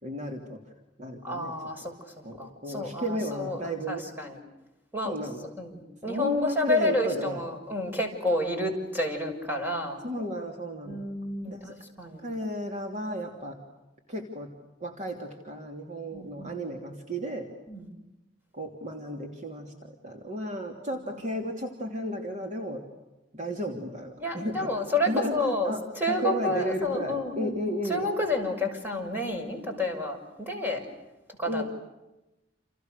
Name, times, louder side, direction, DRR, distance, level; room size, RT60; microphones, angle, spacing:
voice 1, 0.0-0.6 1.0-1.5 2.2-4.0 5.0-5.4 6.1-7.4 10.0-11.0 11.5-11.7 12.2-13.6 14.1-14.5 14.8-17.5 18.5-22.9 23.3-24.7 25.1-28.0 31.5-31.6, equal, 40° right, 2 dB, 3.1 m, -33 dB
voice 2, 1.2-4.4 4.9-5.3 5.6-10.0 10.8-12.2 16.1-16.6 17.7-17.8 24.2-27.5 27.9-30.8 31.4-31.6, left 2 dB, 10° right, 2 dB, 6.3 m, -30 dB
29.5 x 29.5 x 6.7 m, 0.99 s
head